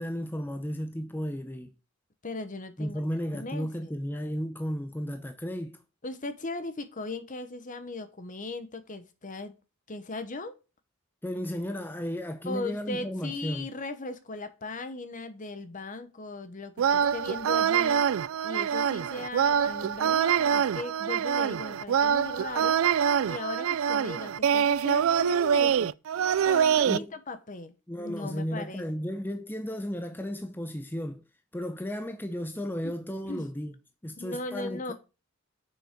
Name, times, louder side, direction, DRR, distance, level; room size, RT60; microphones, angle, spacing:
voice 1, 0.0-1.7 2.8-5.8 11.2-13.7 26.9-27.1 27.9-31.2 31.5-33.7 34.0-34.9, equal, 10° left, 0.6 m, -34 dB
voice 2, 2.2-3.0 3.3-3.9 6.0-9.5 9.9-10.5 12.4-18.0 18.4-22.8 23.2-25.9 26.5-28.8 32.8-32.9 33.3-33.5 34.2-34.9, left 2 dB, 35° left, 1.0 m, -38 dB
sound 1, 16.8-27.0, right 8 dB, 65° right, 0.3 m, -25 dB
6.9 x 6.5 x 5.1 m
head